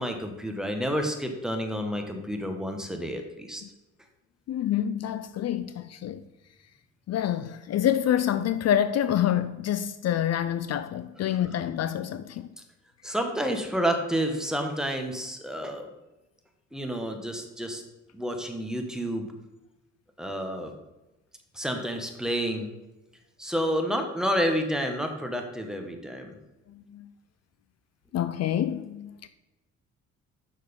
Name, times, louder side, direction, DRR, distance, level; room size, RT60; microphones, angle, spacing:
voice 1, 0.0-3.6 13.0-15.9 16.7-17.8 18.1-19.3 20.2-20.7 21.5-22.7 23.4-26.3, equal, ahead, 1.4 m, -29 dB
voice 2, 4.5-6.2 7.1-12.5 26.7-27.1 28.1-29.3, left 10 dB, 60° left, 0.5 m, -27 dB
7.1 x 6.1 x 5.3 m
cardioid pair, 90°, 30 cm